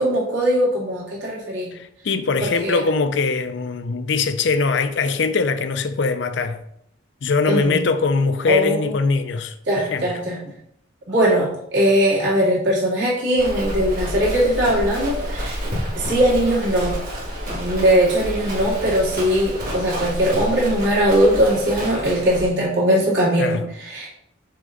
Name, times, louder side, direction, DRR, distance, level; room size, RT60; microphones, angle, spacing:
voice 1, 0.0-1.7 2.4-2.8 7.4-7.8 8.5-8.9 9.7-10.4 11.1-15.6 16.0-17.0 17.5-24.1, equal, 65° right, 2.5 m, -20 dB
voice 2, 1.7-6.6 7.2-9.5 9.9-10.1 23.4-23.6, left 4 dB, 60° left, 0.5 m, -22 dB
Livestock farm animals working animals, 13.4-22.5, equal, 45° right, 1.9 m, -29 dB
6.6 x 3.7 x 3.8 m
head